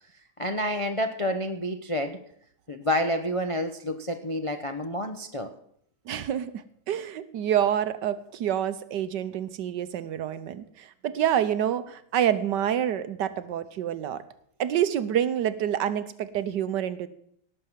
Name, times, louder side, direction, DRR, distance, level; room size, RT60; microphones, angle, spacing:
voice 1, 0.4-2.2 2.7-5.5, left 1 dB, 45° left, 5 dB, 0.4 m, -29 dB
voice 2, 6.1-14.2 14.6-17.1, right 10 dB, 70° right, 13 dB, 1.3 m, -27 dB
18.0 x 6.7 x 7.3 m, 0.68 s
omnidirectional pair, 2.1 m